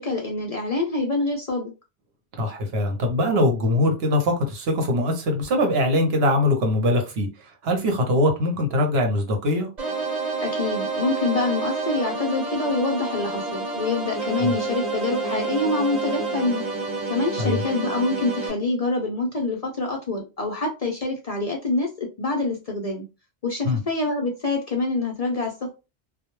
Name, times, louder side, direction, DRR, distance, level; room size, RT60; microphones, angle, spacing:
voice 1, 0.0-1.7 10.4-16.6 17.1-23.1 23.4-25.7, left 3 dB, 55° left, 0.4 m, -26 dB
voice 2, 2.4-7.3 7.6-9.7 14.4-14.5 17.4-17.6 23.6-23.8, left 1 dB, 65° right, 0.9 m, -22 dB
sound 1, 9.8-18.5, right 3 dB, 40° right, 1.1 m, -28 dB
2.1 x 2.1 x 2.9 m
omnidirectional pair, 1.1 m